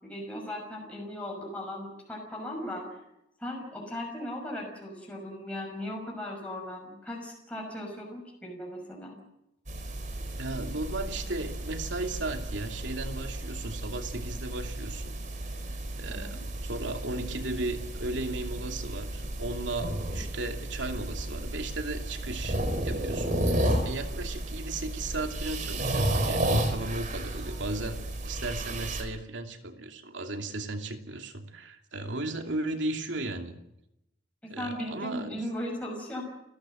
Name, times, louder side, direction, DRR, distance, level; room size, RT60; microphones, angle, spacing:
voice 1, 0.0-3.0 3.4-9.2 16.1-16.4 34.4-36.2, left 1 dB, 5° left, -1 dB, 5.9 m, -37 dB
sound 1, 9.7-29.0, right 1 dB, 45° right, 4.0 m, -33 dB
voice 2, 10.4-15.2 16.0-22.6 22.8-33.6 34.5-35.4, right 2 dB, 75° right, 5 dB, 2.7 m, -36 dB
29.5 x 15.0 x 7.7 m, 0.85 s
head